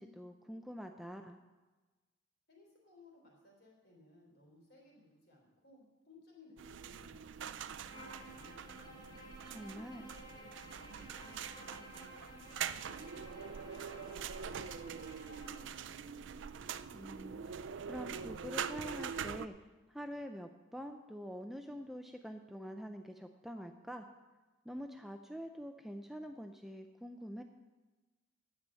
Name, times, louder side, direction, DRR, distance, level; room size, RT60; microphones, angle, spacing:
voice 1, 0.0-1.4 9.5-10.0 16.9-19.5 19.9-24.1 24.7-27.4, equal, ahead, 5 dB, 0.4 m, -46 dB
voice 2, 2.5-8.9 9.5-13.3 13.7-16.3, left 1 dB, 55° left, -1 dB, 3.5 m, -61 dB
sound 1, 6.6-19.5, right 7 dB, 60° right, 0.4 m, -44 dB
Bowed string instrument, 7.8-15.7, equal, 20° left, 3.0 m, -54 dB
9.5 x 7.6 x 8.6 m, 1.2 s
head